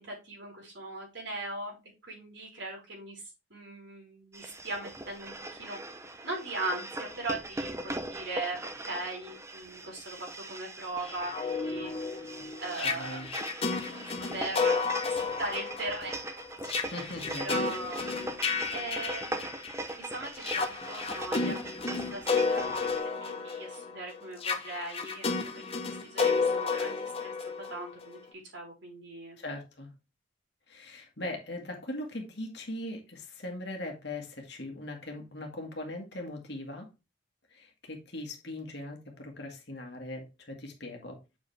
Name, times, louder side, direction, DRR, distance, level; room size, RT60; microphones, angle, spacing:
voice 1, 0.0-1.8 2.0-3.2 3.5-5.8 6.2-11.9 12.6-13.2 14.0-14.1 14.3-16.2 17.3-18.1 18.7-19.6 19.9-21.6 21.9-25.4 25.8-27.3 27.7-29.4, right 2 dB, 65° right, -1 dB, 4.0 m, -39 dB
sound 1, 4.3-23.0, right 1 dB, 15° right, 0.6 m, -40 dB
sound 2, 11.1-19.9 20.4-28.2, left 4 dB, 30° left, 0.8 m, -32 dB
voice 2, 12.8-13.3 16.9-17.5 29.4-29.9 30.7-36.9 37.5-41.2, left 1 dB, 55° left, 2 dB, 1.8 m, -40 dB
7.2 x 4.9 x 3.3 m, 0.26 s
head